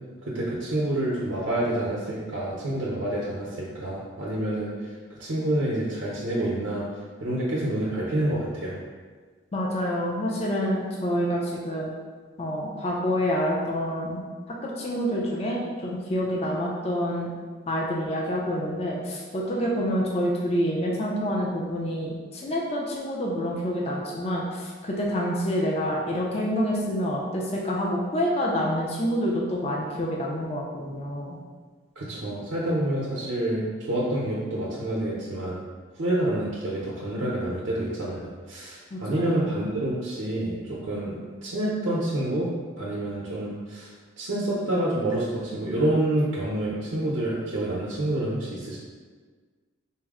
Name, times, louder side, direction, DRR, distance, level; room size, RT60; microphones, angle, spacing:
voice 1, 0.3-4.9 5.2-6.9 7.2-8.8 32.0-35.6 36.0-42.5 42.8-43.9 44.2-48.8, right 1 dB, 75° right, -6 dB, 0.6 m, -28 dB
voice 2, 9.5-11.9 12.4-14.2 14.6-17.3 17.7-31.4 38.9-39.4, equal, 30° left, -3 dB, 0.4 m, -27 dB
4.2 x 2.0 x 3.5 m, 1.5 s
head